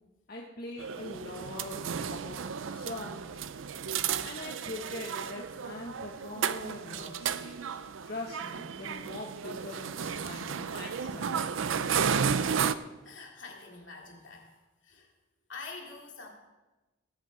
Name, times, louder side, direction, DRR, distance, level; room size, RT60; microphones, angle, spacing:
voice 1, 0.3-2.4 2.7-3.4 4.2-7.8 8.1-11.4, left 2 dB, 50° left, -2 dB, 1.5 m, -42 dB
sound 1, 0.8-12.7, right 7 dB, 75° right, 0.5 m, -33 dB
voice 2, 3.9-4.3 6.9-7.0 10.2-10.4 11.2-11.3 12.0-12.7 13.0-15.1 15.5-16.3, left 3 dB, 70° left, 0 dB, 2.6 m, -47 dB
20.0 x 8.8 x 4.3 m, 1.1 s
head